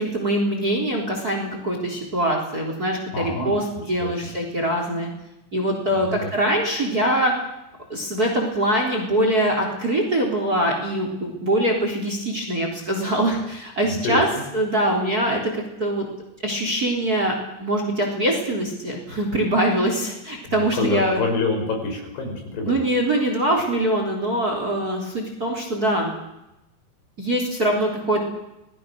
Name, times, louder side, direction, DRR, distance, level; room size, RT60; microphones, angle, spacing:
voice 1, 0.0-5.1 5.5-7.3 7.9-14.3 14.5-16.0 16.4-21.2 22.6-26.1 27.2-28.2, right 1 dB, 20° right, 2 dB, 3.6 m, -23 dB
voice 2, 3.1-3.5 4.0-4.1 5.9-6.3 13.8-14.4 20.5-22.8, left 3 dB, 65° left, 2 dB, 7.5 m, -27 dB
28.0 x 19.5 x 6.5 m, 0.93 s
omnidirectional pair, 5.2 m